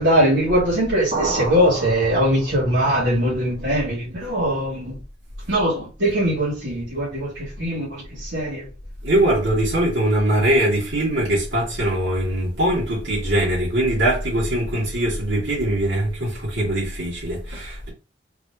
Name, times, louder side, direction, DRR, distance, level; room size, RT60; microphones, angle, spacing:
voice 1, 0.0-5.0 5.5-8.6, equal, 75° right, 2.5 m, -21 dB
sound 1, 1.1-2.8, right 3 dB, 40° right, 1.3 m, -29 dB
voice 2, 9.0-17.9, right 1 dB, 90° right, 2.4 m, -21 dB
4.0 x 3.7 x 2.9 m
head